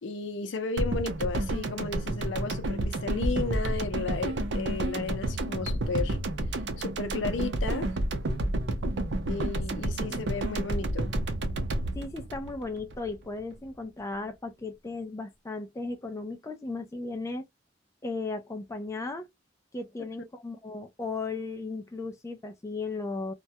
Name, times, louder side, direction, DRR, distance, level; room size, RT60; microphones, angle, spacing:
voice 1, 0.0-6.2 6.8-7.9 9.3-11.1, left 4 dB, 75° left, 0.5 m, -34 dB
sound 1, 0.8-13.1 13.4-13.5, right 1 dB, 65° right, 0.5 m, -30 dB
voice 2, 9.8-10.2 11.9-17.4 18.0-19.3 19.7-23.3, left 3 dB, 15° left, 0.3 m, -36 dB
2.2 x 2.1 x 2.6 m
head